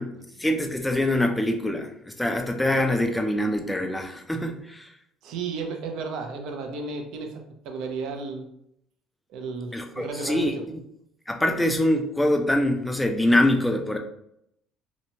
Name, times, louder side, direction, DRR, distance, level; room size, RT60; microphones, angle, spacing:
voice 1, 0.4-1.9 2.2-4.9 9.7-10.5 11.3-14.0, left 1 dB, 5° left, 4 dB, 0.3 m, -24 dB
voice 2, 5.2-8.5 9.3-10.6, right 4 dB, 70° right, 4 dB, 0.5 m, -33 dB
2.8 x 2.1 x 2.7 m, 0.76 s
cardioid pair, 135°, 0 cm